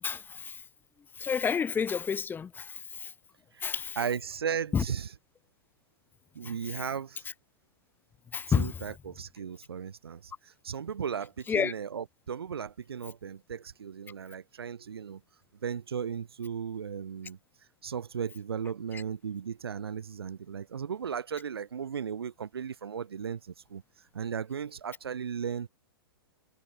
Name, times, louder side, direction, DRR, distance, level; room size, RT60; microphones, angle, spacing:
voice 1, 0.0-0.6 1.2-3.1 3.6-4.0 4.7-4.8 6.4-6.5 8.3-8.8 11.5-11.7 18.9-19.0, left 6 dB, 15° left, 1.8 m, -30 dB
voice 2, 3.5-5.1 6.3-7.3 8.5-15.2 15.6-17.4 17.8-23.8 24.1-25.7, right 7 dB, 80° right, 2.5 m, -36 dB
hypercardioid pair, 125°, 13 cm